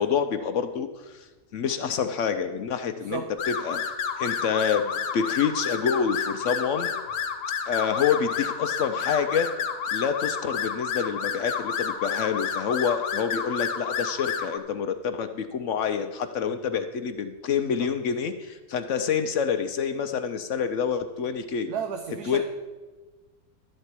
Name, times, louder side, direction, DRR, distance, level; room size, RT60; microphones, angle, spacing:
voice 1, 0.0-3.8 4.2-6.9 7.7-9.5 9.9-21.7 22.3-22.4, left 7 dB, 65° left, 8 dB, 0.8 m, -27 dB
voice 2, 3.0-3.3 16.7-16.8 17.8-17.9 21.7-22.4, right 7 dB, 75° right, 5 dB, 1.3 m, -33 dB
sound 1, 3.4-14.6, left 6 dB, 80° left, 1.5 m, -30 dB
12.0 x 4.4 x 8.2 m, 1.2 s
omnidirectional pair, 1.7 m